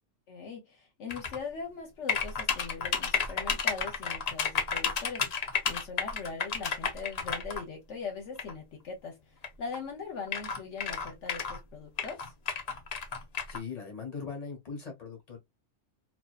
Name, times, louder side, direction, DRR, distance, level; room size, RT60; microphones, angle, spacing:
voice 1, 0.3-12.3, left 5 dB, 70° left, 1.0 m, -41 dB
sound 1, 1.1-1.4 2.1-7.6 8.4-8.5 9.4-9.5 9.7-9.8 10.3-11.6 12.0-13.6, left 5 dB, 55° left, 0.4 m, -31 dB
voice 2, 13.5-15.4, left 5 dB, 35° left, 1.2 m, -40 dB
2.6 x 2.4 x 2.2 m
omnidirectional pair, 1.3 m